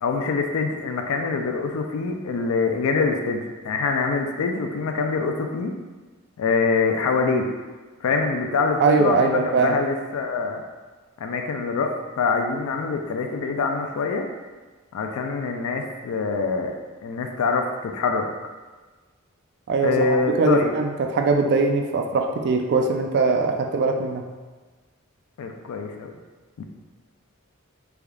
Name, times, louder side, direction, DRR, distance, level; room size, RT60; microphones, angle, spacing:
voice 1, 0.0-5.7 6.4-7.5 8.0-10.6 11.2-14.3 14.9-16.8 17.0-18.3 19.8-20.7 25.4-26.1 26.6-26.7, left 4 dB, 85° left, 4 dB, 0.3 m, -24 dB
voice 2, 8.8-9.8 19.7-24.2, right 4 dB, 50° right, 3 dB, 0.3 m, -21 dB
3.5 x 3.4 x 2.3 m, 1.3 s
head